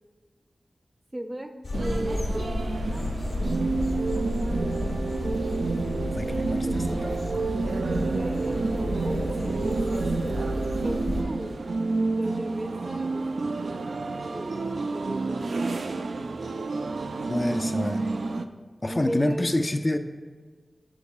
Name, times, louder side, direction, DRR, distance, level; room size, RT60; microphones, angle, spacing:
voice 1, 1.1-1.5 1.8-3.1 3.4-4.7 6.2-7.0 7.9-9.5 9.9-11.6 12.1-13.9 14.2-16.5 18.9-19.5, right 1 dB, 20° right, 6 dB, 0.6 m, -37 dB
sound 1, 1.6-11.2, left 1 dB, 75° left, 0.8 m, -32 dB
sound 2, 1.7-18.5, right 3 dB, 80° right, 0.3 m, -29 dB
voice 2, 6.1-7.2 17.3-18.0 18.8-20.0, left 1 dB, 30° left, 6 dB, 0.3 m, -27 dB
13.0 x 4.6 x 2.3 m, 1.5 s
cardioid pair, 50°, 0 cm